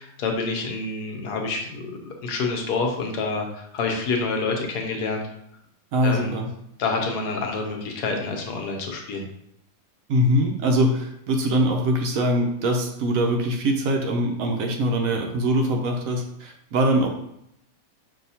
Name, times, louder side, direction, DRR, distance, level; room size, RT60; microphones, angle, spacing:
voice 1, 0.0-5.3 6.0-6.4 6.8-9.3, left 3 dB, 85° left, 2 dB, 1.3 m, -27 dB
voice 2, 5.9-6.5 10.1-17.1, right 1 dB, 70° right, 2 dB, 0.9 m, -22 dB
5.5 x 2.7 x 2.7 m, 0.76 s
omnidirectional pair, 1.7 m